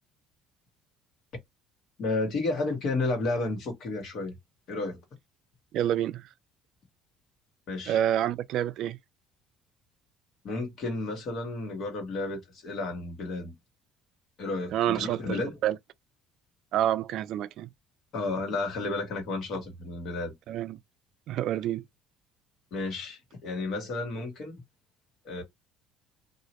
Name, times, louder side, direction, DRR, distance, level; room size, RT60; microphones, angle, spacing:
voice 1, 2.0-4.3 4.7-5.0 7.7-8.0 10.4-13.5 14.4-15.6 18.1-20.3 22.7-24.6 25.2-25.4, left 2 dB, 50° left, 1.5 m, -32 dB
voice 2, 5.7-6.3 7.9-9.0 14.7-15.8 16.7-17.7 20.5-20.8 21.3-21.8, right 11 dB, 60° right, 0.3 m, -28 dB
2.8 x 2.4 x 3.0 m
cardioid pair, 145°, 0 cm